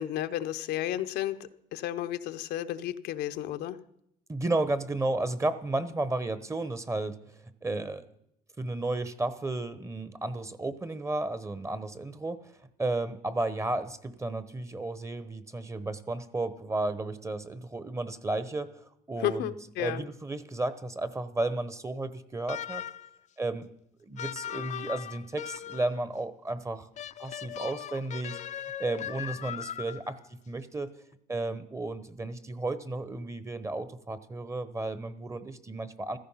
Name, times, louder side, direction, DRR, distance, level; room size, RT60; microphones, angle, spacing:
voice 1, 0.0-3.8 19.2-20.1, left 12 dB, 80° left, 9 dB, 0.8 m, -32 dB
voice 2, 4.3-7.2 7.6-8.1 8.6-12.5 12.8-19.5 19.8-22.8 23.4-23.7 24.0-26.9 27.2-30.9 31.3-36.2, right 2 dB, 15° right, 14 dB, 1.0 m, -33 dB
sound 1, 22.5-23.2 24.2-26.0 27.0-30.2, left 10 dB, 45° left, 0.5 m, -39 dB
15.5 x 14.0 x 5.7 m, 0.75 s
cardioid pair, 110°, 17 cm